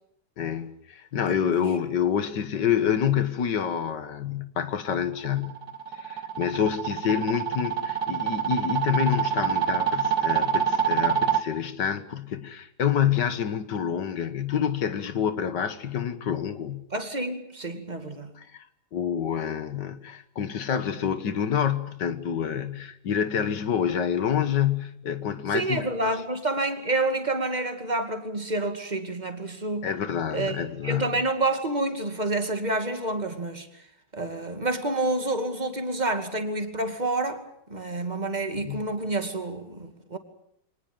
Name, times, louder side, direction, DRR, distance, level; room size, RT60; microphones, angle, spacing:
voice 1, 0.4-5.5 6.0-16.8 18.4-18.7 18.9-25.9 29.8-31.1 38.6-38.8, left 8 dB, 90° left, 2.1 m, -27 dB
sound 1, 5.3-11.4, right 8 dB, 65° right, 2.0 m, -26 dB
voice 2, 16.9-18.3 25.5-29.9 30.3-30.6 30.8-33.9 34.1-40.2, right 2 dB, 25° right, 2.6 m, -28 dB
25.0 x 19.5 x 9.0 m
omnidirectional pair, 1.8 m